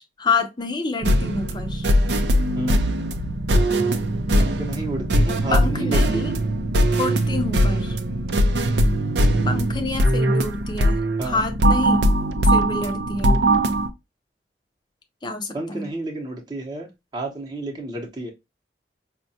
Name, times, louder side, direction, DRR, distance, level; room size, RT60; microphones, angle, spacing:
voice 1, 0.0-1.9 5.5-6.3 7.0-8.0 9.4-12.1 12.5-13.4 15.2-15.9, left 3 dB, 25° left, 0.5 m, -27 dB
sound 1, 1.0-13.9, equal, 75° right, 0.5 m, -20 dB
voice 2, 2.5-2.9 4.3-6.4 11.2-11.4 15.5-18.3, right 2 dB, 25° right, 0.7 m, -31 dB
5.2 x 2.2 x 2.6 m
head